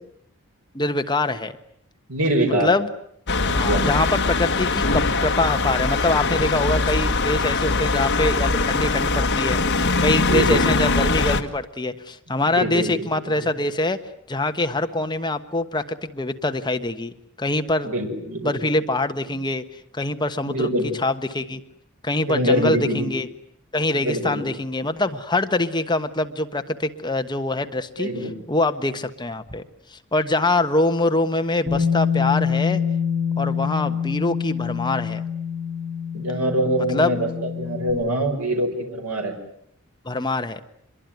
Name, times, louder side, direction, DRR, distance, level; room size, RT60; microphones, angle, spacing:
voice 1, 0.7-1.6 2.6-2.9 3.5-14.0 14.3-17.9 18.4-19.6 19.9-20.7 21.0-21.6 22.0-23.3 23.7-28.1 28.5-29.6 29.9-32.8 33.4-35.2 36.9-37.2 40.0-40.6, left 2 dB, 20° left, 8 dB, 1.3 m, -24 dB
voice 2, 2.1-2.7 3.4-3.9 10.3-10.8 12.6-13.3 17.8-18.5 20.5-20.9 22.3-23.1 23.9-24.5 28.0-28.3 36.1-39.4, right 1 dB, 85° right, 4 dB, 5.8 m, -24 dB
sound 1, 3.3-11.4, left 3 dB, 50° left, 1.7 m, -22 dB
Bass guitar, 31.7-37.9, left 7 dB, 40° right, 6.9 m, -25 dB
26.0 x 22.5 x 9.4 m, 0.68 s
head